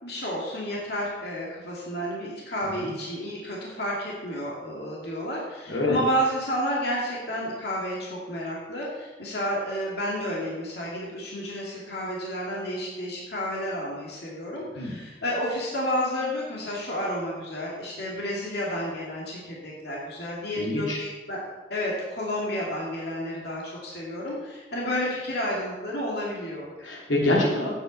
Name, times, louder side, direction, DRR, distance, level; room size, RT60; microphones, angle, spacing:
voice 1, 0.0-21.4 21.7-26.7, equal, 60° left, -4 dB, 2.3 m, -31 dB
voice 2, 20.6-21.0 26.8-27.7, left 2 dB, 90° left, -4 dB, 2.9 m, -26 dB
9.1 x 8.5 x 5.4 m, 1.2 s
head